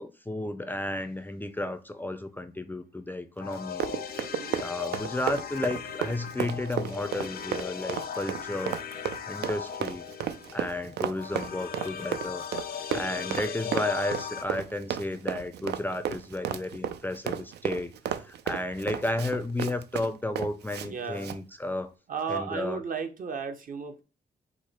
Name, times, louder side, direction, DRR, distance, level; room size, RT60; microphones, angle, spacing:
voice 1, 0.0-3.8 4.1-4.3 4.6-8.8 9.3-10.0 10.5-12.5 12.9-21.9 22.3-22.8, left 1 dB, 10° left, 0.4 m, -33 dB
sound 1, 3.4-14.4, left 8 dB, 65° left, 0.5 m, -38 dB
Run, 3.5-20.9 21.2-21.4, right 9 dB, 85° right, 0.4 m, -33 dB
voice 2, 4.3-4.6 20.8-21.4 22.1-24.0, right 5 dB, 55° right, 0.8 m, -34 dB
4.8 x 2.1 x 4.1 m
cardioid pair, 95°, 17 cm